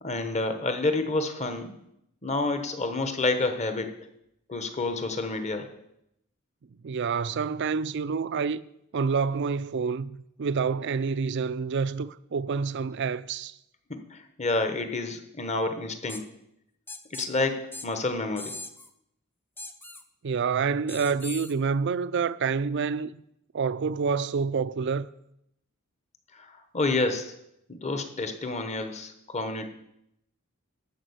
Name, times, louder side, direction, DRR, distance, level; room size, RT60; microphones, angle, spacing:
voice 1, 0.0-1.8 2.2-3.9 4.5-5.7 13.9-16.3 17.1-18.5 26.3-27.3 27.7-29.7, left 2 dB, 30° left, 1.1 m, -29 dB
voice 2, 6.8-8.6 8.9-13.5 20.2-23.2 23.5-25.1, right 5 dB, 55° right, 0.4 m, -28 dB
sound 1, 16.1-16.2 16.9-17.3 17.7-17.9 18.4-18.9 19.6-20.0 20.9-21.5, left 2 dB, 10° left, 0.5 m, -40 dB
12.5 x 5.0 x 8.0 m
head